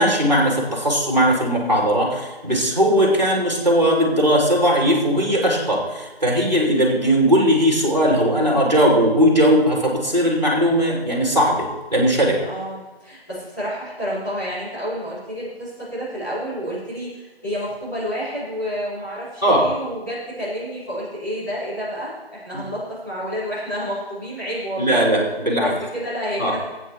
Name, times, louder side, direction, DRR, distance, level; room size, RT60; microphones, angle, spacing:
voice 1, 0.0-12.4 19.4-19.6 22.5-22.6 24.8-25.7 26.4-26.6, equal, 40° right, -2 dB, 3.0 m, -18 dB
voice 2, 12.4-25.0 25.6-26.6, equal, 20° left, -14 dB, 4.5 m, -29 dB
20.0 x 9.0 x 3.2 m, 1.2 s
figure-of-eight pair, 175°, 32 cm